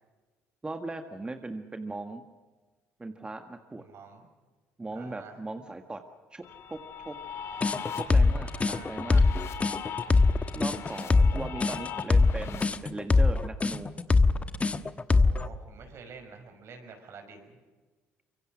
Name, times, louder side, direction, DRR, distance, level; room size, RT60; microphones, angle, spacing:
voice 1, 0.6-2.2 3.0-3.8 4.8-6.0 6.3-6.8 7.0-7.1 7.9-9.2 10.5-13.9, right 2 dB, 20° right, 7 dB, 1.6 m, -38 dB
voice 2, 3.8-4.3 4.9-5.4 8.4-9.0 11.3-11.4 15.1-17.6, right 5 dB, 60° right, 6 dB, 5.6 m, -48 dB
sound 1, 6.4-12.6, left 7 dB, 60° left, 2.6 m, -40 dB
sound 2, 7.6-15.5, left 3 dB, 25° left, 1.2 m, -22 dB
25.0 x 23.0 x 6.3 m, 1.3 s
cardioid pair, 90°, 5 cm